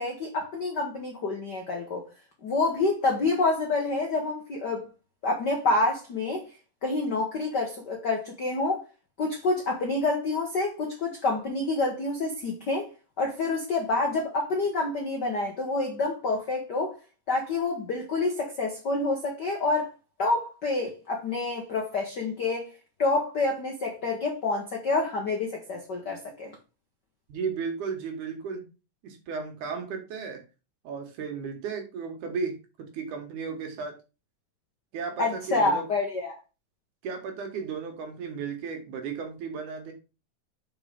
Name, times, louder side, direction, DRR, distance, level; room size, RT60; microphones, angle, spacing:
voice 1, 0.0-2.1 2.4-4.9 5.2-6.5 6.8-8.8 9.2-12.9 13.2-17.0 17.3-19.9 20.2-22.7 23.0-26.5 35.2-36.4, left 3 dB, 90° left, 0.9 m, -28 dB
voice 2, 27.3-28.6 29.0-30.4 30.8-34.0 34.9-35.8 37.0-39.9, right 5 dB, 70° right, 2.8 m, -34 dB
5.3 x 5.1 x 4.9 m
omnidirectional pair, 3.7 m